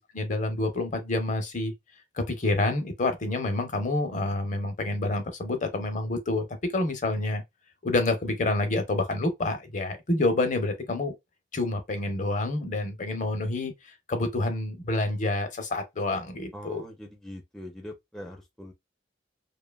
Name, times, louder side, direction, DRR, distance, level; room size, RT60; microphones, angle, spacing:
voice 1, 0.1-1.7 2.1-6.4 6.7-7.4 7.8-11.1 11.5-13.7 14.1-16.8, left 2 dB, 45° left, 0.6 m, -28 dB
voice 2, 16.5-18.7, left 1 dB, ahead, 0.4 m, -42 dB
2.8 x 2.3 x 2.2 m
head